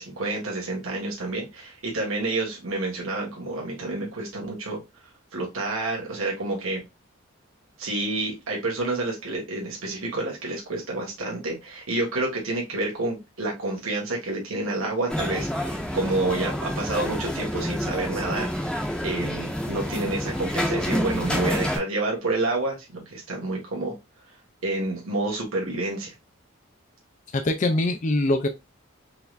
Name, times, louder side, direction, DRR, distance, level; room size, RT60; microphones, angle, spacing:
voice 1, 0.0-4.8 5.3-6.8 7.8-18.7 19.0-23.9 24.6-26.1, right 2 dB, 85° right, -2 dB, 1.6 m, -29 dB
sound 1, 15.1-21.8, equal, 5° left, 0.8 m, -28 dB
voice 2, 27.3-28.5, left 2 dB, 35° left, 6 dB, 0.5 m, -23 dB
4.7 x 3.3 x 2.5 m, 0.23 s
head